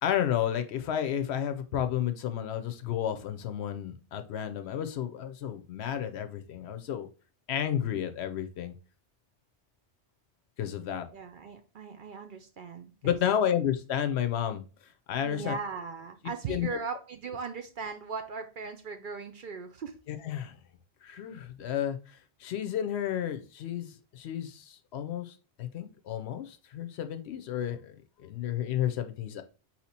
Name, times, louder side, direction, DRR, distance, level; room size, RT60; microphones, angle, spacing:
voice 1, 0.0-7.1 7.5-8.7 10.6-11.0 13.0-14.6 15.1-15.5 16.5-16.7 20.1-20.6 21.0-29.4, left 10 dB, 75° left, 8 dB, 0.8 m, -32 dB
voice 2, 11.1-13.2 15.2-19.9, right 5 dB, 60° right, 6 dB, 0.6 m, -38 dB
4.5 x 2.8 x 4.1 m, 0.34 s
omnidirectional pair, 1.1 m